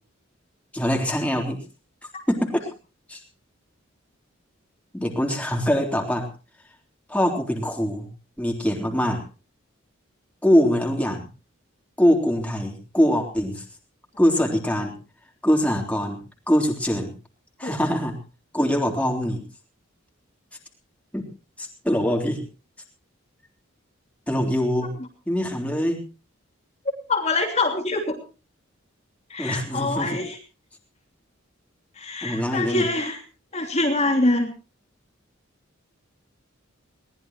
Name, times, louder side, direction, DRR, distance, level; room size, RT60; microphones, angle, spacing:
voice 1, 0.7-1.6 2.3-2.6 3.1-3.2 4.9-6.3 7.1-8.1 8.4-9.2 10.4-11.2 12.0-13.6 14.2-15.0 15.4-16.2 16.5-17.1 17.6-18.2 18.5-19.4 21.1-21.3 21.6-22.4 24.3-24.9 25.3-26.0 29.4-30.2 32.2-32.9, equal, 5° left, 1 dB, 3.7 m, -23 dB
voice 2, 27.1-28.2 29.3-30.4 32.0-33.2 33.5-34.5, left 2 dB, 35° left, 0 dB, 3.1 m, -24 dB
22.0 x 19.0 x 3.0 m, 0.34 s
head